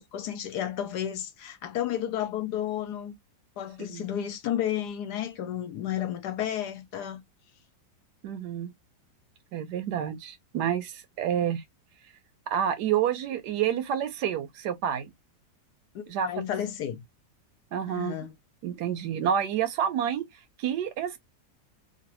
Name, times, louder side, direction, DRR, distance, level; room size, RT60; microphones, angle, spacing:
voice 1, 0.0-3.1 3.6-7.2 15.9-17.0 17.9-18.4, left 10 dB, 70° left, 1.1 m, -32 dB
voice 2, 8.2-8.7 9.5-11.6 12.5-15.1 16.1-16.4 17.7-18.2 18.6-20.3 20.6-21.2, right 9 dB, 70° right, 1.1 m, -29 dB
3.0 x 2.5 x 2.9 m
omnidirectional pair, 1.9 m